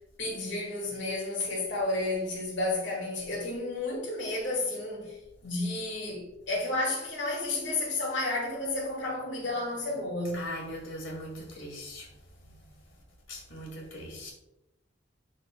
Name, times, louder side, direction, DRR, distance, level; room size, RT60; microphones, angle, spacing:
voice 1, 0.2-5.2 5.4-10.5, left 2 dB, 70° left, 1.7 m, -31 dB
voice 2, 10.3-12.1 13.3-14.3, equal, 90° left, 2.1 m, -40 dB
11.5 x 4.2 x 2.2 m
head